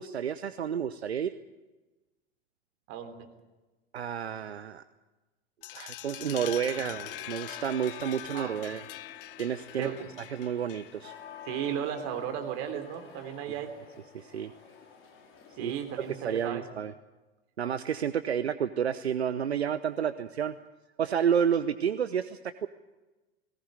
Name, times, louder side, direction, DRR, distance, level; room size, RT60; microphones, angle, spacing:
voice 1, 0.0-1.3 3.9-4.8 5.7-8.8 9.4-9.9 10.3-11.2 14.1-14.5 15.6-15.7 16.2-16.9 17.6-20.6 21.0-22.7, right 8 dB, 80° right, 13 dB, 0.8 m, -30 dB
voice 2, 2.9-3.3 8.3-8.8 9.8-10.1 11.4-13.7 15.6-16.7, right 9 dB, 50° right, 6 dB, 3.6 m, -35 dB
sound 1, 5.6-11.2, left 14 dB, 55° left, 1.0 m, -43 dB
sound 2, 6.2-16.5, left 7 dB, 40° left, 4.6 m, -51 dB
20.0 x 18.0 x 8.9 m, 1.1 s
figure-of-eight pair, 85°, 32 cm